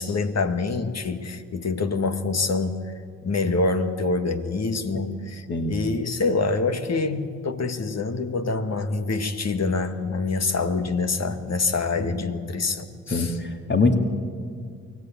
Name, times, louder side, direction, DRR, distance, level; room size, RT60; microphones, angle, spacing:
voice 1, 0.0-2.8 3.2-13.4, left 3 dB, 45° left, 8 dB, 2.0 m, -26 dB
voice 2, 13.1-14.0, left 3 dB, 30° left, 5 dB, 2.6 m, -23 dB
23.5 x 17.5 x 8.8 m, 2.1 s
supercardioid pair, 55°, 35 cm